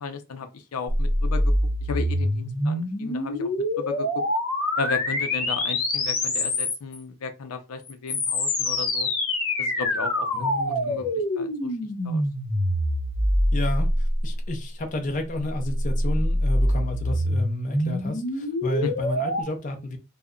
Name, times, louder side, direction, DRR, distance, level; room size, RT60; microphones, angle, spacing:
voice 1, 0.0-1.4 1.9-3.5 3.8-4.1 4.8-9.1 9.6-10.3 10.6-11.1 11.4-11.7 12.0-12.2 18.8-18.9, left 4 dB, 85° left, 0.5 m, -34 dB
sound 1, 0.9-7.0 7.8-14.5 15.5-19.4, left 1 dB, 65° left, 0.9 m, -25 dB
voice 2, 10.3-11.1 13.5-20.0, left 2 dB, 35° left, 0.5 m, -31 dB
2.1 x 2.1 x 3.6 m
head